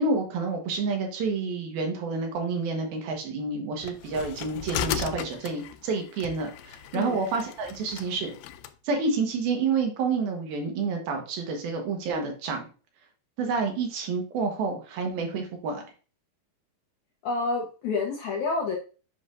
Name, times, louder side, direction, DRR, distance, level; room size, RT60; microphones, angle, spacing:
voice 1, 0.0-8.3 8.8-12.7 13.4-15.8, right 4 dB, 75° right, 3 dB, 3.0 m, -29 dB
sound 1, 3.8-8.7, left 9 dB, 90° left, 2.5 m, -36 dB
voice 2, 17.2-18.8, left 4 dB, 75° left, -1 dB, 1.8 m, -28 dB
7.7 x 5.6 x 2.5 m, 0.36 s
omnidirectional pair, 4.4 m